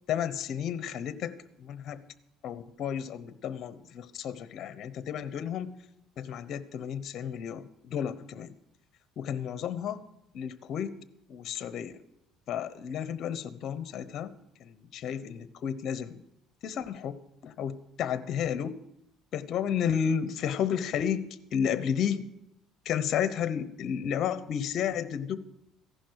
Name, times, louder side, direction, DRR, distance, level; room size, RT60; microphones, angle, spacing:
voice 1, 0.1-2.0 2.4-5.7 6.2-8.5 9.2-10.0 10.3-11.0 11.3-11.9 12.5-14.3 14.6-16.2 16.6-18.7 19.3-22.2 22.8-25.4, left 8 dB, 50° left, 13 dB, 1.0 m, -32 dB
15.5 x 11.5 x 4.8 m, 0.81 s
cardioid pair, 130°, 0 cm